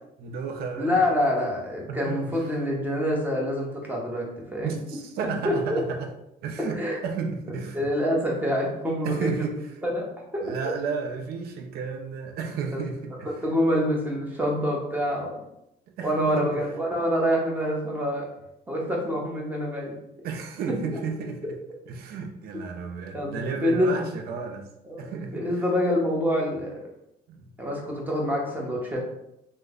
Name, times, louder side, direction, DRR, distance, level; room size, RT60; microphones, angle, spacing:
voice 1, 0.2-1.1 1.9-2.6 4.6-6.1 6.4-7.9 9.0-9.6 10.4-13.3 16.0-16.6 20.2-21.6 21.9-24.7 25.0-25.6 27.3-27.5, right 5 dB, 65° right, 0.5 m, -33 dB
voice 2, 0.8-4.7 5.4-5.8 6.8-7.0 7.7-9.5 9.8-10.1 10.3-10.4 12.7-12.8 13.4-15.4 16.0-18.3 18.7-20.0 23.1-24.0 24.8-26.8 27.6-29.0, equal, 10° right, 1.0 m, -26 dB
3.1 x 2.1 x 3.6 m
cardioid pair, 110°, 17 cm